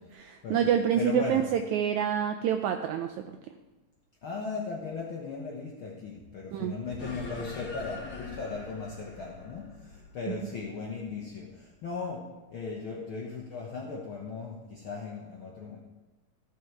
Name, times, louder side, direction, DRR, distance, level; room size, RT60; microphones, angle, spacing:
voice 1, 0.1-3.4 6.5-6.7 10.3-10.5, right 8 dB, 85° right, 6 dB, 1.7 m, -27 dB
voice 2, 0.9-1.4 4.2-15.8, left 4 dB, 65° left, -2 dB, 1.3 m, -37 dB
sound 1, 7.0-11.8, left 3 dB, 40° left, 1.9 m, -44 dB
14.5 x 6.6 x 4.6 m, 1.2 s
omnidirectional pair, 3.9 m